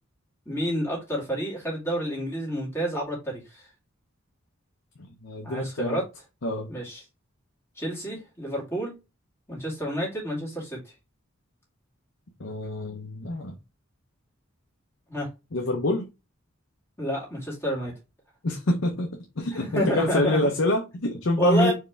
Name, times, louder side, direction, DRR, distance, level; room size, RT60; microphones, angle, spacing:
voice 1, 0.5-3.7 5.4-6.0 6.7-7.0 7.8-8.9 9.5-10.9 15.1-15.3 17.0-17.9 19.5-20.4 21.4-21.7, right 1 dB, 10° left, 2.3 m, -29 dB
voice 2, 5.2-6.0 6.4-6.7 12.4-13.5 15.5-16.1 18.4-19.1 19.4-21.7, left 1 dB, 60° left, 0.7 m, -26 dB
4.7 x 3.3 x 3.4 m
head